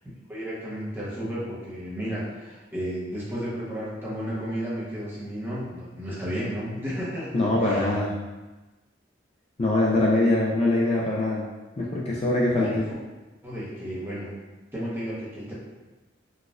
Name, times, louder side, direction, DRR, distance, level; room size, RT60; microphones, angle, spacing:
voice 1, 0.3-7.9 12.6-12.8 13.4-14.3 14.7-15.5, equal, 10° right, -8 dB, 0.8 m, -33 dB
voice 2, 7.3-8.1 9.6-11.4 11.8-12.8, left 2 dB, 30° left, -4 dB, 0.3 m, -23 dB
3.9 x 2.4 x 2.4 m, 1.2 s
head